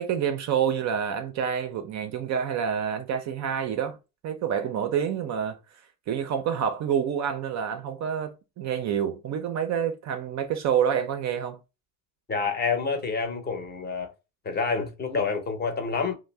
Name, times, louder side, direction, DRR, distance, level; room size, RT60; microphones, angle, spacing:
voice 1, 0.0-4.0 4.2-5.6 6.1-11.6, right 8 dB, 40° right, 0.4 m, -28 dB
voice 2, 12.3-14.1 14.4-16.1, left 5 dB, 20° left, 0.7 m, -28 dB
2.5 x 2.1 x 3.2 m
supercardioid pair, 100°, 48 cm